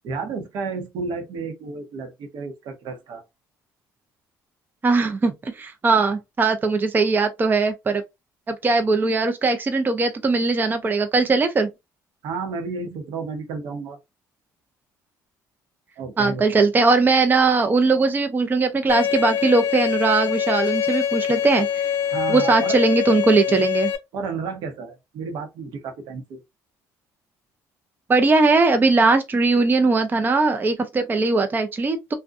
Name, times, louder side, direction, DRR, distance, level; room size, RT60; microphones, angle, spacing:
voice 1, 0.0-3.2 5.9-6.2 12.2-14.0 16.0-16.7 22.1-22.8 24.1-26.4, right 4 dB, 70° right, 0.8 m, -32 dB
voice 2, 4.8-8.0 8.5-11.7 16.2-21.9 22.3-23.9 28.1-32.1, right 3 dB, 25° right, 0.5 m, -20 dB
Bowed string instrument, 18.9-24.0, left 9 dB, 50° left, 0.7 m, -24 dB
2.6 x 2.1 x 2.5 m
supercardioid pair, 85°, 7 cm